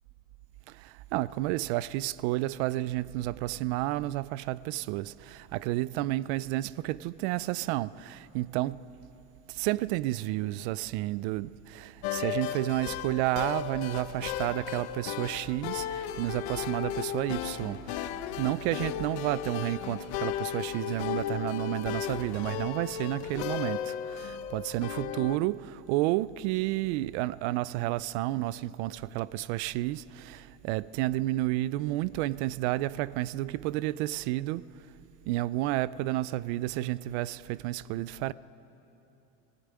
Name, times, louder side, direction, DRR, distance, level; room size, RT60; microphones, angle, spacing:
voice 1, 0.7-8.9 9.5-34.7 35.3-38.3, right 16 dB, 65° right, 0.5 m, -31 dB
sound 1, 12.0-25.4, left 11 dB, 60° left, 0.9 m, -35 dB
17.0 x 17.0 x 9.6 m
cardioid pair, 170°, 36 cm